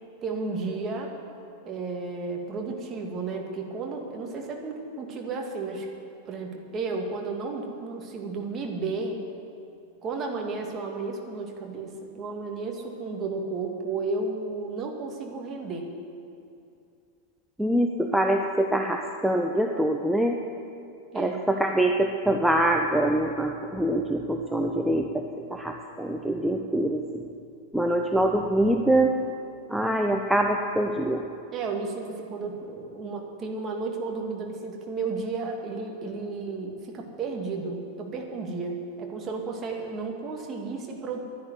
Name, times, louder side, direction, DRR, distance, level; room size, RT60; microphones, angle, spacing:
voice 1, 0.2-1.1 1.6-5.9 6.3-9.3 10.0-15.9 21.1-21.5 31.5-41.2, right 4 dB, 25° right, 1 dB, 2.0 m, -33 dB
voice 2, 17.6-20.4 21.1-27.2 27.7-29.1 29.7-31.3, right 1 dB, 5° right, 2 dB, 0.7 m, -24 dB
11.0 x 11.0 x 9.4 m, 2.5 s
figure-of-eight pair, 90°, 0 cm